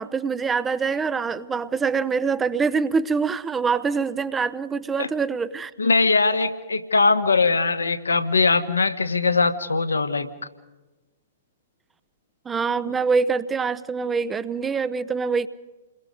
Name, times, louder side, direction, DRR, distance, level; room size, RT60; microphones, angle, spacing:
voice 1, 0.0-5.7 12.4-15.5, right 5 dB, 15° right, 14 dB, 0.8 m, -24 dB
voice 2, 5.8-10.3, left 4 dB, 75° left, 9 dB, 1.6 m, -21 dB
28.5 x 22.0 x 5.2 m, 1.1 s
figure-of-eight pair, 115°, 0 cm